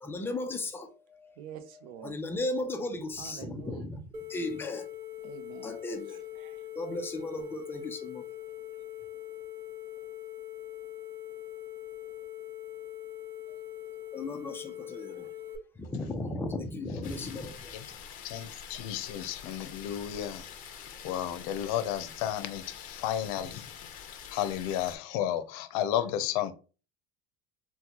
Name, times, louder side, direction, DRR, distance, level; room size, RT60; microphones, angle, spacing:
voice 1, 0.0-1.4 2.0-4.0 4.3-4.9 5.6-6.2 6.8-8.2 14.1-15.3 15.8-17.9, left 2 dB, 10° left, 0.5 m, -36 dB
voice 2, 1.4-2.2 3.2-3.9 5.2-5.8 6.1-6.6, right 9 dB, 85° right, 0.6 m, -46 dB
sound 1, 4.1-15.6, left 12 dB, 25° right, 0.7 m, -42 dB
sound 2, 17.0-25.0, left 8 dB, 50° left, 0.7 m, -46 dB
voice 3, 18.2-20.5 21.0-23.7 24.3-26.5, left 11 dB, 85° left, 0.6 m, -32 dB
3.9 x 2.2 x 2.9 m
cardioid pair, 150°, 18 cm